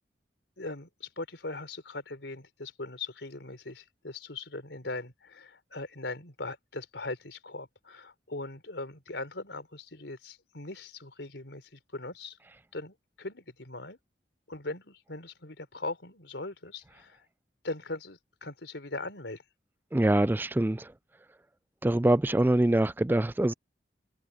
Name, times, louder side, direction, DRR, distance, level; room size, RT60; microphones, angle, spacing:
voice 1, 0.6-12.4 12.7-14.0 14.5-17.2 17.6-19.4, left 2 dB, 85° left, 3.9 m, -40 dB
voice 2, 19.9-20.9 21.8-23.5, right 1 dB, 10° right, 0.3 m, -24 dB
head